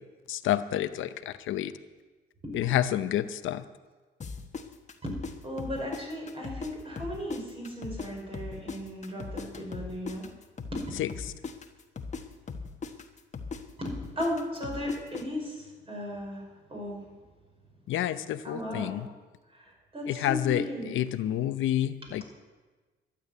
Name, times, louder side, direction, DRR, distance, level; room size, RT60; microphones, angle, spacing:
voice 1, 0.3-1.7 2.5-3.6 11.0-11.1 17.9-19.1 20.1-20.6 20.9-22.2, left 12 dB, 80° left, 11 dB, 0.7 m, -29 dB
sound 1, 4.2-6.7 7.0-10.8 11.1-15.2, left 4 dB, 35° left, 1.3 m, -39 dB
voice 2, 5.0-10.3 10.7-10.9 13.8-17.0 18.4-19.0 19.5-21.0 22.0-22.1, equal, 25° right, 0 dB, 5.6 m, -36 dB
12.5 x 8.5 x 9.4 m, 1.3 s
cardioid pair, 90°, 20 cm